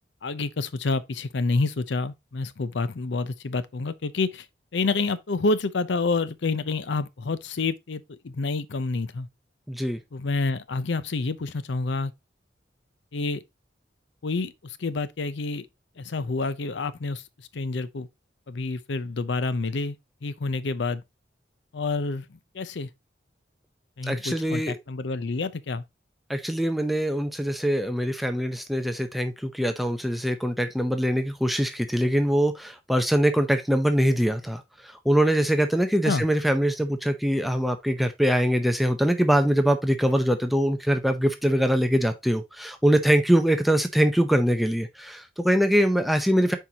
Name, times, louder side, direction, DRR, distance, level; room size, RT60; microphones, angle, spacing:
voice 1, 0.2-4.5 4.7-9.3 10.1-12.1 13.1-13.4 14.2-15.7 16.0-18.1 18.5-20.0 20.2-21.0 21.7-22.9 24.0-25.8 36.0-36.2, left 3 dB, 70° left, 0.6 m, -28 dB
voice 2, 9.7-10.0 24.0-24.8 26.3-46.6, equal, ahead, 0.6 m, -23 dB
7.7 x 4.6 x 2.8 m
head